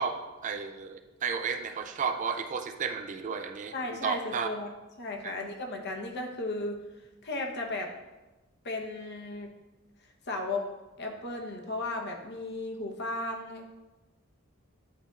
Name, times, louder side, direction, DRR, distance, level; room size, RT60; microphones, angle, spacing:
voice 1, 0.0-3.7 4.0-4.5 5.2-5.3, right 6 dB, 35° right, 7 dB, 0.4 m, -33 dB
voice 2, 3.7-4.7 5.0-7.9 8.6-9.5 10.3-10.6 11.0-13.7, left 2 dB, 55° left, 2 dB, 0.9 m, -35 dB
9.9 x 4.2 x 2.4 m, 1.1 s
head